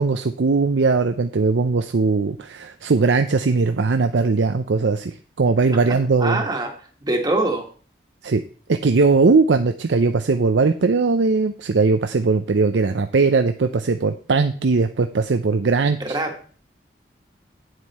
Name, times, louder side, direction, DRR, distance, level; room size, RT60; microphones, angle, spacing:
voice 1, 0.0-6.4 8.2-8.4 8.7-16.2, right 4 dB, 90° right, 8 dB, 0.6 m, -19 dB
voice 2, 6.2-6.7 7.0-7.7 16.0-16.3, right 2 dB, 20° right, 3 dB, 1.5 m, -23 dB
9.3 x 7.9 x 4.2 m, 0.42 s
head